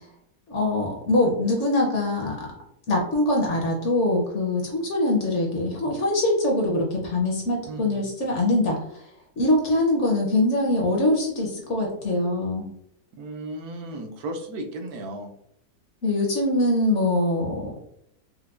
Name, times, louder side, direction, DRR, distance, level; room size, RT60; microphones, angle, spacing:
voice 1, 0.5-2.5 2.9-9.0 9.4-12.7 16.0-17.7, left 1 dB, 60° left, 0 dB, 0.9 m, -23 dB
voice 2, 7.7-8.0 13.1-15.3, right 1 dB, 80° right, 4 dB, 1.1 m, -35 dB
4.5 x 2.1 x 2.4 m, 0.73 s
omnidirectional pair, 1.6 m